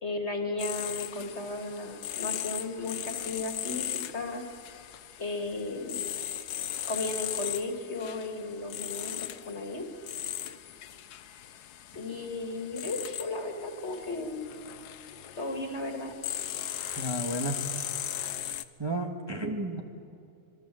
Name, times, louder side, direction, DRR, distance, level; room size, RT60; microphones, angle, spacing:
voice 1, 0.0-4.4 5.2-6.0 6.9-9.8 11.9-14.4 15.4-16.2, left 2 dB, 45° left, 4 dB, 2.6 m, -35 dB
sound 1, 0.6-18.6, left 11 dB, 90° left, 1.4 m, -38 dB
voice 2, 17.0-17.6 18.8-19.8, right 1 dB, 15° right, 1 dB, 1.6 m, -32 dB
26.0 x 23.5 x 7.8 m, 2.5 s
omnidirectional pair, 1.6 m